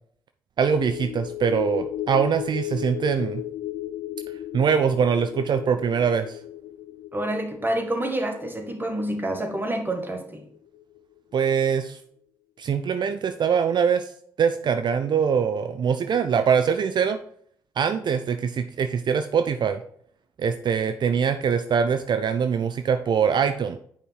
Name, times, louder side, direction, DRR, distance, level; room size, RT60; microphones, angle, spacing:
sound 1, 0.6-11.2 11.5-11.7, left 13 dB, 80° left, 0.3 m, -36 dB
voice 1, 0.6-3.4 4.5-6.4 11.3-12.0 12.6-14.1 14.4-17.2 17.8-19.8 20.4-23.8, right 7 dB, 55° right, 9 dB, 0.5 m, -23 dB
voice 2, 7.1-10.4, right 1 dB, 20° right, 4 dB, 1.9 m, -28 dB
7.2 x 5.1 x 4.6 m, 0.63 s
hypercardioid pair, 45°, 9 cm